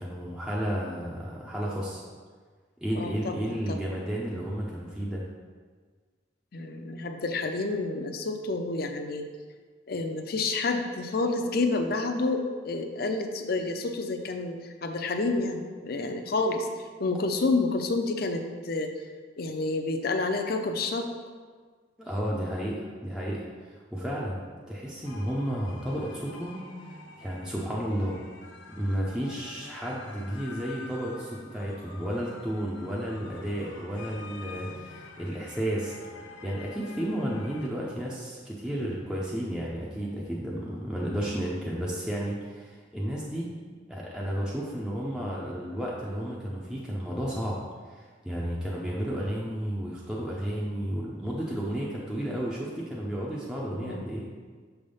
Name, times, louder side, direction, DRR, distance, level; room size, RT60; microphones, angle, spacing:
voice 1, 0.0-2.0 2.8-5.2 22.0-26.6 26.9-28.2 28.7-36.0 36.4-43.5 43.9-47.6 47.9-54.2, equal, 5° right, -5 dB, 0.6 m, -32 dB
voice 2, 3.0-3.8 6.5-9.3 9.9-14.6 14.8-16.7 17.0-18.9 19.4-21.1 53.7-54.1, left 3 dB, 55° left, 5 dB, 0.6 m, -29 dB
sound 1, 25.0-37.7, left 3 dB, 85° left, 0.7 m, -47 dB
6.4 x 3.5 x 5.4 m, 1.5 s
head